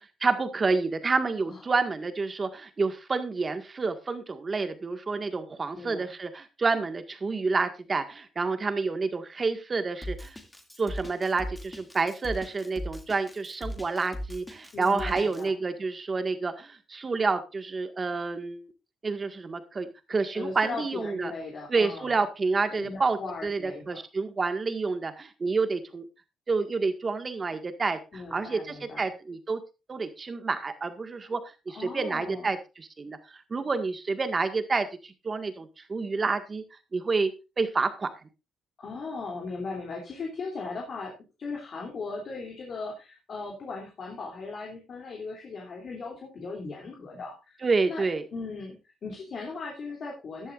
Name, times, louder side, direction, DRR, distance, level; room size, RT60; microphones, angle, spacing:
voice 1, 0.2-10.4 10.8-18.6 19.0-21.3 21.7-26.1 26.5-29.6 29.9-31.4 31.7-36.6 36.9-37.3 37.6-38.1 47.6-48.2, right 4 dB, 35° right, 8 dB, 1.8 m, -29 dB
voice 2, 5.7-6.1 14.7-15.6 20.3-22.2 22.7-24.0 28.1-29.1 31.7-32.5 38.8-48.0 48.3-50.5, left 3 dB, 55° left, -1 dB, 3.0 m, -38 dB
Drum kit, 10.0-15.4, equal, 10° left, 2.4 m, -38 dB
14.5 x 11.0 x 2.5 m, 0.28 s
cardioid pair, 90°, 0 cm